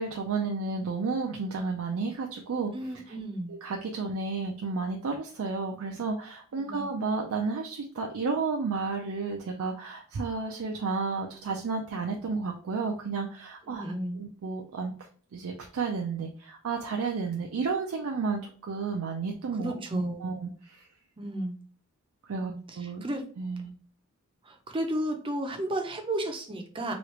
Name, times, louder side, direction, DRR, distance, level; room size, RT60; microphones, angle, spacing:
voice 1, 0.0-3.2 3.5-13.8 14.2-14.9 15.3-20.9 22.2-23.0 23.4-23.8, right 4 dB, 80° right, 2 dB, 0.4 m, -32 dB
voice 2, 2.7-3.5 6.6-6.9 13.7-14.2 19.6-20.3 21.2-21.6 22.4-23.2 24.4-26.9, right 1 dB, 25° right, 4 dB, 0.5 m, -33 dB
3.1 x 2.4 x 3.0 m, 0.43 s
head